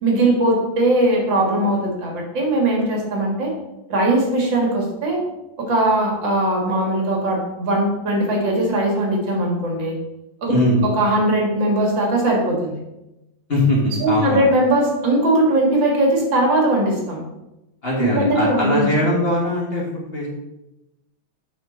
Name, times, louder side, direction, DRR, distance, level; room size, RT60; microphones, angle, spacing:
voice 1, 0.0-3.5 3.9-5.2 5.6-9.9 10.4-10.5 10.8-12.8 14.0-17.2 18.0-18.8, right 1 dB, 70° right, 0 dB, 2.5 m, -19 dB
voice 2, 10.5-10.8 13.5-14.5 17.8-20.3, left 1 dB, 30° left, -3 dB, 1.7 m, -21 dB
8.5 x 6.0 x 3.8 m, 0.94 s
omnidirectional pair, 2.2 m